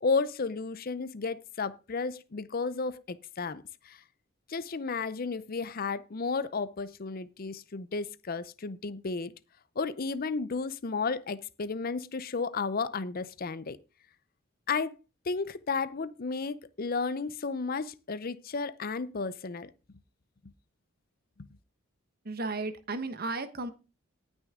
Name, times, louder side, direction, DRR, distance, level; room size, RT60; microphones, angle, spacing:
voice 1, 0.0-4.0 4.5-9.3 9.8-13.8 14.7-15.0 15.3-19.7, left 4 dB, 45° left, 0.6 m, -33 dB
voice 2, 22.2-23.7, right 3 dB, 45° right, 1.3 m, -34 dB
18.5 x 6.3 x 3.7 m
head